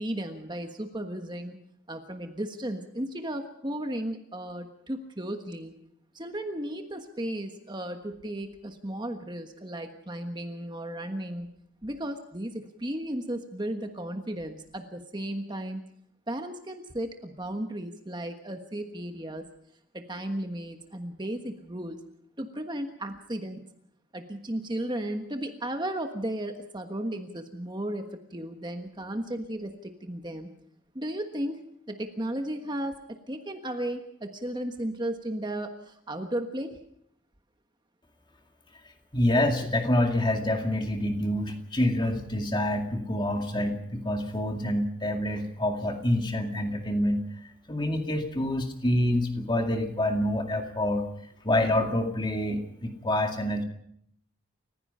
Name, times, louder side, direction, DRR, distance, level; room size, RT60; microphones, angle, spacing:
voice 1, 0.0-1.6 1.9-5.7 6.1-11.5 11.8-15.8 16.3-19.4 19.9-22.0 22.4-23.7 24.1-30.5 30.9-31.6 31.9-36.8, right 1 dB, 20° right, 5 dB, 1.3 m, -35 dB
voice 2, 39.1-47.2 47.7-51.1 51.4-53.6, left 1 dB, 20° left, 4 dB, 2.2 m, -27 dB
30.0 x 15.5 x 5.6 m, 0.71 s
head